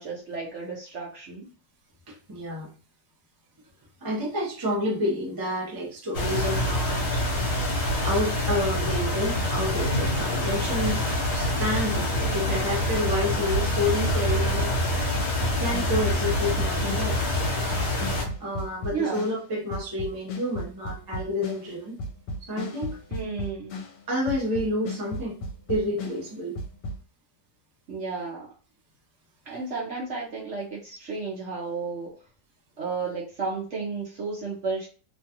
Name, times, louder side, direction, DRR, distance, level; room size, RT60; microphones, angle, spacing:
voice 1, 0.0-1.5 18.9-19.2 23.1-23.8 27.9-28.5 29.5-32.1 32.8-34.9, right 4 dB, 60° right, -3 dB, 0.8 m, -32 dB
voice 2, 2.1-2.7 4.0-7.2 8.0-11.0 11.3-14.7 15.6-17.2 18.4-22.0 22.4-23.0 24.1-25.4 25.7-26.6, left 1 dB, 30° right, -3 dB, 0.4 m, -29 dB
sound 1, 6.1-18.2, left 1 dB, 65° left, 1.3 m, -26 dB
sound 2, 15.1-24.0 24.3-27.0, left 1 dB, 80° left, 1.2 m, -35 dB
3.0 x 2.3 x 2.8 m, 0.36 s
omnidirectional pair, 1.9 m